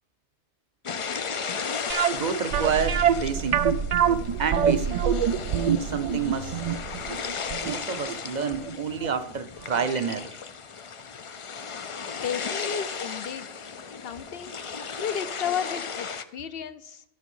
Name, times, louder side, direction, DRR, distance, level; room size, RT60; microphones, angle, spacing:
sound 1, 0.8-16.2, left 5 dB, 45° left, 0.4 m, -35 dB
sound 2, 1.9-8.8 9.0-9.1 9.7-9.8 10.1-10.2, right 8 dB, 60° right, 0.4 m, -25 dB
voice 1, 2.1-3.6 4.4-5.1 5.7-6.6 7.6-10.4, right 6 dB, 45° right, 10 dB, 0.8 m, -29 dB
sound 3, 2.5-7.6, right 5 dB, 85° right, 0.9 m, -34 dB
voice 2, 12.2-13.5 14.0-14.6 15.0-17.0, left 8 dB, 65° left, 12 dB, 0.8 m, -33 dB
13.0 x 6.0 x 5.5 m, 0.77 s
omnidirectional pair, 1.2 m